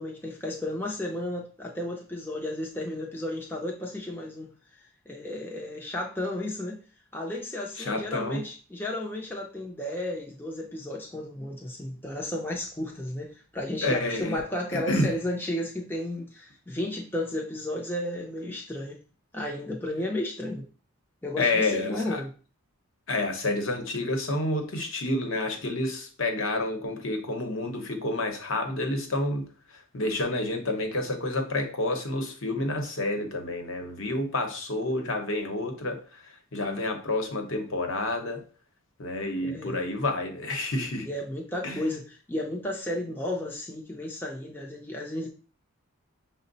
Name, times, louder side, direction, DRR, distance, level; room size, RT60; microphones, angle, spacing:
voice 1, 0.0-4.5 5.1-6.8 7.1-19.0 19.3-20.7 21.2-22.3 39.3-39.8 41.0-45.3, left 1 dB, 10° left, 0.5 m, -33 dB
voice 2, 7.8-8.4 13.8-14.4 14.7-15.1 21.4-22.2 23.1-29.5 29.9-36.0 36.5-38.4 39.0-41.1 41.6-41.8, left 2 dB, 65° left, 0.9 m, -29 dB
6.0 x 2.1 x 3.9 m
head